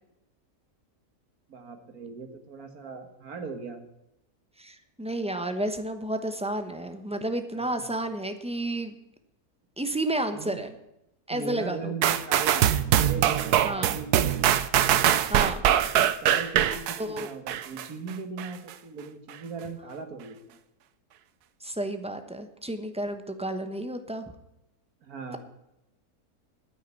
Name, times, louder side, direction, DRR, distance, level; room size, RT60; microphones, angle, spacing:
voice 1, 1.5-3.8 7.5-7.9 10.3-10.6 11.3-14.5 16.2-20.6 25.0-25.4, right 4 dB, 70° right, 6 dB, 2.0 m, -39 dB
voice 2, 4.6-9.0 9.8-10.7 11.3-11.9 13.6-13.9 15.3-15.6 17.0-17.3 21.6-24.3, right 1 dB, 5° right, 7 dB, 0.8 m, -31 dB
sound 1, 12.0-17.9 18.4-18.5, right 11 dB, 90° right, 1.3 m, -23 dB
9.6 x 9.2 x 9.6 m, 0.88 s
omnidirectional pair, 1.6 m